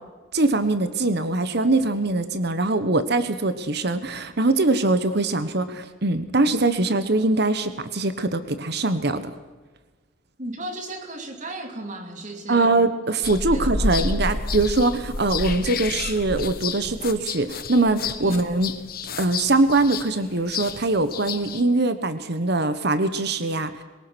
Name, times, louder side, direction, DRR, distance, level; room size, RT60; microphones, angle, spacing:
voice 1, 0.3-9.3 12.5-18.7 19.2-23.8, right 2 dB, 55° right, 11 dB, 1.3 m, -22 dB
voice 2, 10.4-12.7 13.5-13.9 18.2-18.4, right 1 dB, 40° right, 5 dB, 2.8 m, -35 dB
sound 1, 13.2-21.6, left 3 dB, 50° left, 1.3 m, -30 dB
23.0 x 20.0 x 6.3 m, 1.3 s
head